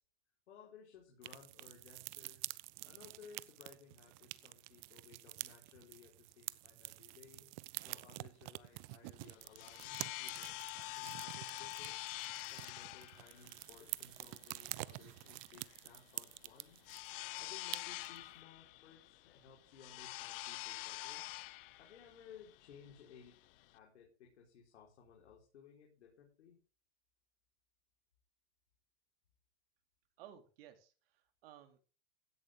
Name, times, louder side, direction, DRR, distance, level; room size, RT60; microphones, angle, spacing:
voice 1, 0.5-2.5 2.8-7.5 7.8-12.0 12.4-16.9 17.4-21.3 21.8-23.3 23.7-26.6, left 6 dB, 85° left, -1 dB, 4.7 m, -59 dB
sound 1, 1.2-17.1 17.4-17.5 17.7-18.2, right 22 dB, 45° right, 0.7 m, -48 dB
sound 2, 9.2-23.8, left 18 dB, 55° left, 0.8 m, -47 dB
voice 2, 30.2-31.8, right 11 dB, 60° right, 7 dB, 2.8 m, -57 dB
16.0 x 11.0 x 3.7 m, 0.36 s
supercardioid pair, 145°, 34 cm